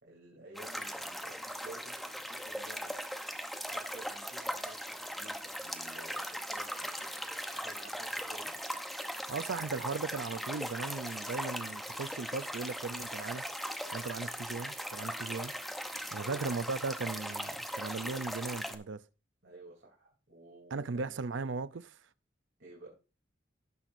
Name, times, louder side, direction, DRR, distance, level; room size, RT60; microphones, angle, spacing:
voice 1, 0.0-1.9 2.3-2.9 3.6-4.8 5.1-7.1 7.5-8.5 16.1-16.5 19.4-21.1 22.6-22.9, right 2 dB, 65° right, 3.2 m, -52 dB
sound 1, 0.5-18.8, equal, ahead, 0.8 m, -39 dB
voice 2, 9.3-13.4 13.9-15.5 16.1-19.0 20.7-22.0, right 4 dB, 90° right, 0.6 m, -37 dB
17.5 x 6.1 x 2.6 m
head